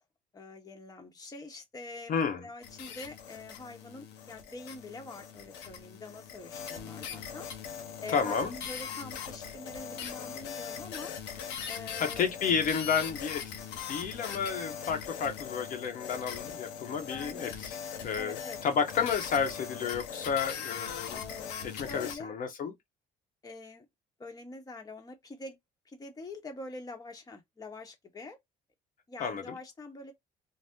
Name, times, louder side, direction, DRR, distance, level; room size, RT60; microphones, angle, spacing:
voice 1, 0.3-7.5 8.0-11.1 11.7-12.3 17.1-17.5 18.2-18.6 21.1-22.3 23.4-23.9 24.2-25.6 25.9-28.4 29.1-30.1, left 3 dB, 20° left, 0.9 m, -45 dB
voice 2, 2.1-2.4 8.1-8.5 12.0-13.4 13.9-17.8 18.0-21.2 21.6-22.7 29.2-29.5, left 6 dB, 55° left, 0.8 m, -31 dB
sound 1, 2.6-22.1, left 7 dB, 85° left, 0.8 m, -41 dB
2.7 x 2.0 x 3.4 m
cardioid pair, 110°, 17 cm